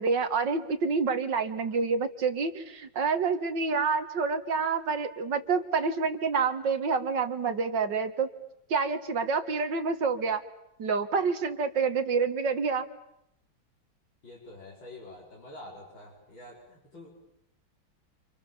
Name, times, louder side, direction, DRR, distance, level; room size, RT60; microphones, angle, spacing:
voice 1, 0.0-8.3 8.7-10.4 10.8-12.9, right 5 dB, 65° right, 9 dB, 2.3 m, -28 dB
voice 2, 14.2-17.1, left 1 dB, 70° left, -3 dB, 6.1 m, -47 dB
29.0 x 28.5 x 7.3 m, 0.80 s
omnidirectional pair, 2.1 m